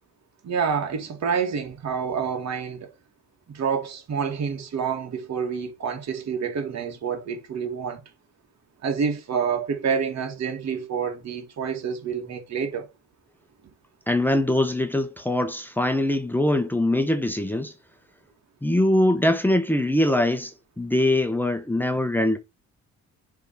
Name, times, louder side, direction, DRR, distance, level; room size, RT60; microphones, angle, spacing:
voice 1, 0.4-2.9 3.5-8.0 8.8-12.9, right 6 dB, 60° right, 2.3 m, -28 dB
voice 2, 14.1-17.7 18.6-22.4, left 1 dB, 5° left, 1.0 m, -22 dB
6.9 x 3.7 x 4.2 m
cardioid pair, 90°, 30 cm